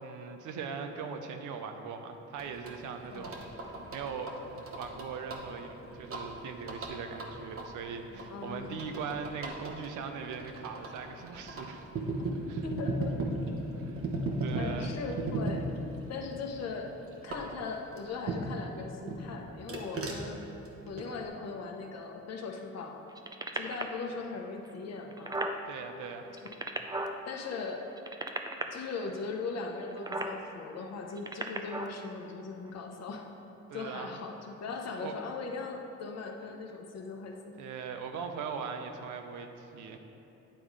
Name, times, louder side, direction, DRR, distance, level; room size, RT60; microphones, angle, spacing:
voice 1, 0.0-4.3 4.7-11.8 12.5-12.7 13.7-14.0 14.4-15.0 25.7-26.3 33.7-34.2 34.9-35.1 37.6-40.0, right 6 dB, 80° right, 6 dB, 0.7 m, -40 dB
sound 1, 2.4-18.7 19.1-21.3, right 2 dB, 45° right, 1.0 m, -38 dB
voice 2, 8.3-8.8 12.2-12.4 12.6-13.1 14.5-15.7 16.1-16.9 17.2-20.4 20.9-23.0 23.5-25.3 26.4-26.5 27.3-27.8 28.7-33.3 33.7-37.5, left 4 dB, 60° left, 2 dB, 0.9 m, -39 dB
sound 2, 23.1-24.0 24.7-24.8 25.0-25.6 26.3-27.2 27.9-28.6 29.9-30.3 31.1-31.9 32.7-32.8, right 2 dB, 15° right, 0.4 m, -35 dB
9.2 x 3.7 x 4.8 m, 2.9 s
cardioid pair, 90°, 30 cm